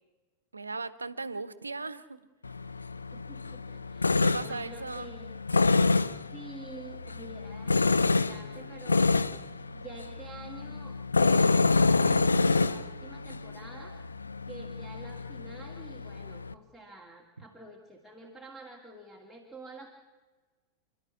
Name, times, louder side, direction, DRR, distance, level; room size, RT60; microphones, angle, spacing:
voice 1, 0.5-2.2 4.1-5.1, right 3 dB, 80° right, 16 dB, 1.0 m, -37 dB
Tools, 2.4-16.5, left 3 dB, 75° left, 0.7 m, -28 dB
voice 2, 3.1-5.4 6.3-14.0 14.5-19.9, right 2 dB, ahead, 2 dB, 2.7 m, -48 dB
29.0 x 12.0 x 9.8 m, 1.3 s
figure-of-eight pair, 90°, 0 cm